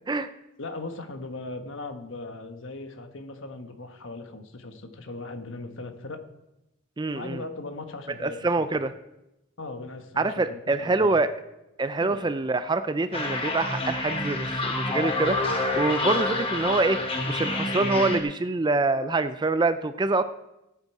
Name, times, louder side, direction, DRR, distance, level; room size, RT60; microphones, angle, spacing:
voice 1, 0.6-6.2 7.1-8.8 9.6-11.2 12.0-12.3, left 2 dB, 60° left, 7 dB, 1.3 m, -38 dB
voice 2, 7.0-7.4 8.2-8.9 10.2-11.3 11.8-20.2, right 3 dB, 20° right, 12 dB, 0.4 m, -25 dB
sound 1, 13.1-18.2, left 2 dB, 25° left, 1.5 m, -28 dB
18.0 x 8.2 x 4.7 m, 0.92 s
head